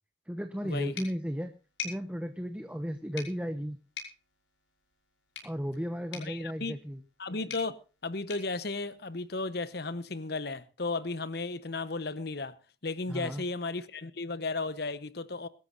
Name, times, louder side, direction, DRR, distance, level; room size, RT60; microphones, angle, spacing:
voice 1, 0.3-1.5 1.8-3.8 5.4-7.0 13.1-13.4, equal, 5° right, 1.0 m, -34 dB
sound 1, 0.9-9.6, left 6 dB, 85° left, 5.8 m, -47 dB
voice 2, 6.1-6.7 7.2-12.6 12.8-15.5, left 3 dB, 55° left, 1.0 m, -34 dB
23.5 x 13.0 x 2.6 m
head